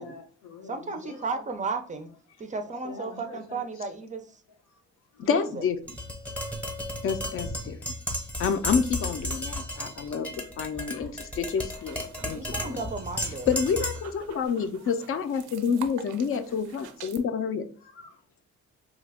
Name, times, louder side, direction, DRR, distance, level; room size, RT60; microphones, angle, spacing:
voice 1, 0.0-1.6 2.3-3.9 4.5-4.8 5.1-5.3 8.4-8.7 9.6-10.3 10.6-11.2 11.7-12.9 14.6-14.9 17.8-18.4, left 4 dB, 85° left, 0.8 m, -48 dB
voice 2, 0.7-2.1 2.4-4.3 5.2-5.6 12.3-13.5, right 4 dB, 25° right, 0.4 m, -34 dB
voice 3, 5.2-5.8 7.0-7.8 8.4-12.8 13.5-17.6, left 6 dB, 45° left, 0.5 m, -28 dB
Tap, 5.9-14.1, left 1 dB, 5° left, 0.8 m, -34 dB
sound 1, 11.5-17.2, right 8 dB, 85° right, 0.5 m, -47 dB
2.9 x 2.2 x 3.4 m
cardioid pair, 90°, 30 cm